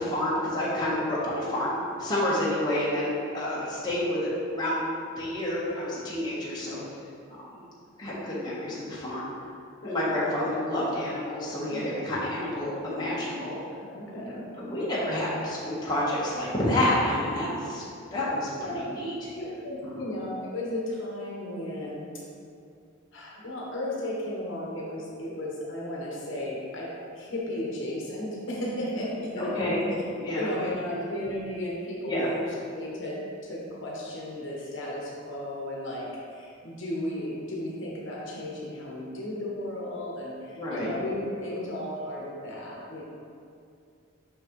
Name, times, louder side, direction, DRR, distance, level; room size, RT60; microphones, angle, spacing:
voice 1, 0.0-4.8 5.1-6.8 7.3-7.5 8.0-9.3 9.8-13.6 14.0-17.8 18.1-18.5 18.8-19.1 19.8-20.0 29.3-29.8 30.1-30.5 30.8-31.0 32.1-32.3 40.6-40.9, left 1 dB, 20° left, -8 dB, 1.3 m, -29 dB
voice 2, 11.7-12.1 13.9-14.8 18.6-18.9 19.3-22.1 23.1-29.7 30.3-43.0, left 1 dB, 60° left, -4 dB, 1.1 m, -34 dB
5.9 x 5.8 x 3.1 m, 2.4 s
head